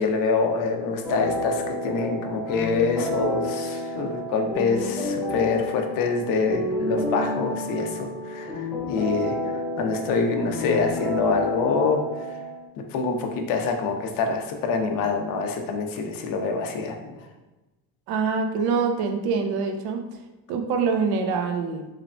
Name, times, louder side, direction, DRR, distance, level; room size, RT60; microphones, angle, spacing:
voice 1, 0.0-9.4 9.8-12.0 12.9-17.2, left 4 dB, 55° left, 4 dB, 0.5 m, -25 dB
sound 1, 1.0-12.6, left 1 dB, ahead, 0.5 m, -30 dB
voice 2, 18.1-20.0 20.5-21.9, right 5 dB, 65° right, 5 dB, 0.5 m, -25 dB
3.1 x 2.1 x 2.5 m, 1.1 s
cardioid pair, 145°, 40 cm